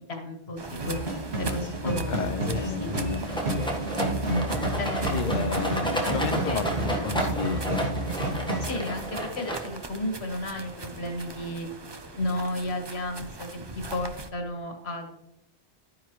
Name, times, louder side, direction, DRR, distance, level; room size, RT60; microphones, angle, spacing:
voice 1, 0.1-2.3 2.6-3.3 4.0-4.5 4.8-7.0 8.6-11.7 12.2-13.5 13.8-15.2, left 1 dB, 75° left, 2 dB, 1.9 m, -33 dB
sound 1, 0.6-14.3, right 3 dB, 30° right, 0.6 m, -41 dB
sound 2, 0.8-8.6, right 2 dB, 80° right, 2.6 m, -30 dB
voice 2, 1.8-3.2 5.1-7.8, left 6 dB, 50° left, 10 dB, 0.7 m, -32 dB
Rattle, 3.3-9.9, right 1 dB, 5° left, 1.4 m, -32 dB
12.0 x 9.6 x 3.2 m, 0.82 s
omnidirectional pair, 1.1 m